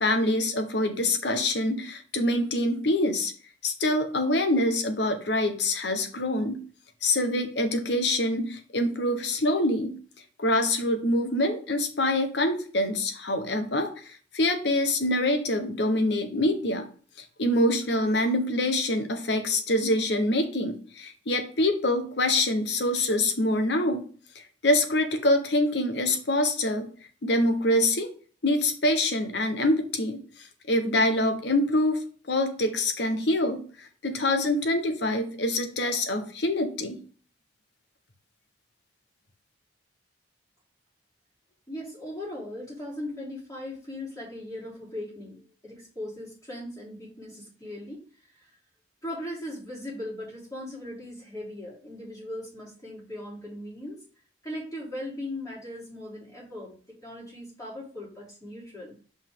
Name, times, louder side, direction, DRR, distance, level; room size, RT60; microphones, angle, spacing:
voice 1, 0.0-3.3 3.6-6.6 7.0-10.0 10.4-16.9 17.4-24.0 24.3-26.9 27.2-28.1 28.4-30.2 30.7-37.0, left 1 dB, 65° left, 7 dB, 1.1 m, -25 dB
voice 2, 41.7-48.0 48.4-48.5 49.0-54.0 54.4-56.8 57.0-59.0, left 1 dB, 20° left, -6 dB, 3.4 m, -38 dB
5.5 x 5.4 x 3.8 m, 0.41 s
head